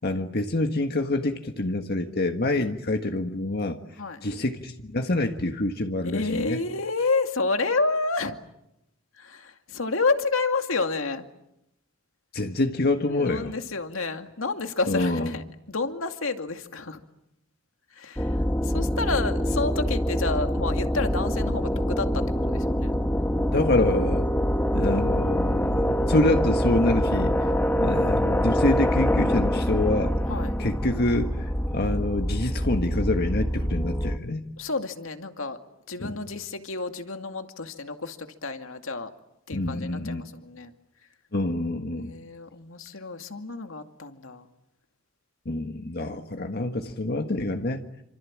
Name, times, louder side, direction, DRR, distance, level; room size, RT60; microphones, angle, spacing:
voice 1, 0.0-3.8 4.2-6.6 12.3-13.5 14.9-15.3 23.5-24.3 24.7-27.5 27.8-30.1 30.6-34.4 36.0-36.1 39.5-40.2 41.3-42.1 45.4-47.8, left 2 dB, 50° left, 5 dB, 1.6 m, -26 dB
voice 2, 6.0-8.4 9.1-11.3 13.1-17.0 17.9-22.9 30.3-30.6 34.6-35.6 35.9-39.1 39.5-40.7 42.0-44.5 45.9-46.8, left 3 dB, 85° left, 6 dB, 2.4 m, -30 dB
sound 1, 18.2-34.2, equal, 10° left, 1.4 m, -25 dB
28.5 x 26.5 x 7.5 m, 0.83 s
head